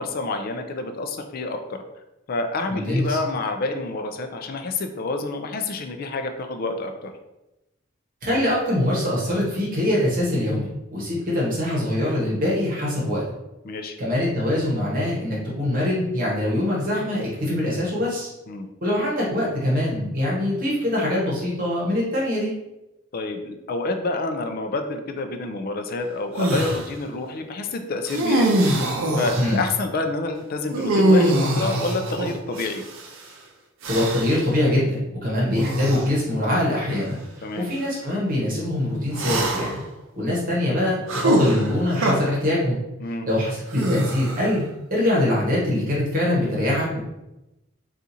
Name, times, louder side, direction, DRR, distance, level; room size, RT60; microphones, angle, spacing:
voice 1, 0.0-1.8 2.3-7.1 13.6-13.9 18.5-18.7 23.1-28.6 29.2-32.8 37.4-37.7 43.0-43.3, left 3 dB, 45° left, 6 dB, 0.4 m, -28 dB
voice 2, 2.7-3.2 8.2-13.2 14.0-18.3 18.8-22.5 29.4-29.6 33.9-35.0 35.2-37.2 37.6-39.8 40.2-42.8 43.3-44.6 44.9-47.0, left 1 dB, 45° right, -5 dB, 0.9 m, -23 dB
sound 1, 26.4-26.9 28.1-29.6 30.7-33.1 33.8-34.4 35.5-36.1 36.9-37.0 39.1-39.9 41.1-42.1 43.7-44.5, right 1 dB, 75° right, 0.5 m, -22 dB
2.8 x 2.4 x 3.8 m, 0.95 s
head